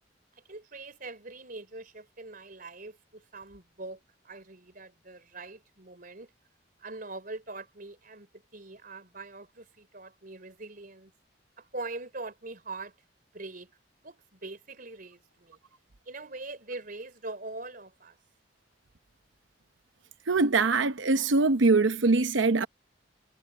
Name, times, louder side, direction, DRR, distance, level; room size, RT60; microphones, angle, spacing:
voice 1, 0.5-4.0 4.2-6.3 6.8-11.1 11.6-12.9 13.3-13.7 14.0-15.6 16.1-18.2, right 3 dB, 50° right, 4.2 m, -42 dB
voice 2, 20.3-22.7, right 3 dB, 90° right, 0.8 m, -23 dB
head